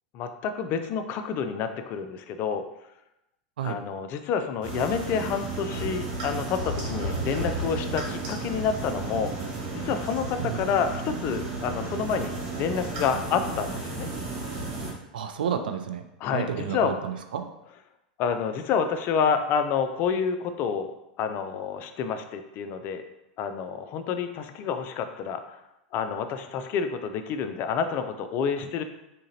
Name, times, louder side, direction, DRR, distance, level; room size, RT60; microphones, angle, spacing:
voice 1, 0.1-2.6 3.6-14.1 16.2-16.9 18.2-20.9 21.2-23.0 23.4-25.6 25.9-28.8, left 6 dB, 45° left, 8 dB, 0.4 m, -28 dB
sound 1, 4.6-14.9, right 2 dB, 65° right, 1.5 m, -33 dB
voice 2, 15.1-16.0 16.3-17.5, right 8 dB, 80° right, 7 dB, 0.4 m, -31 dB
3.6 x 2.8 x 2.8 m, 0.88 s
hypercardioid pair, 100°, 5 cm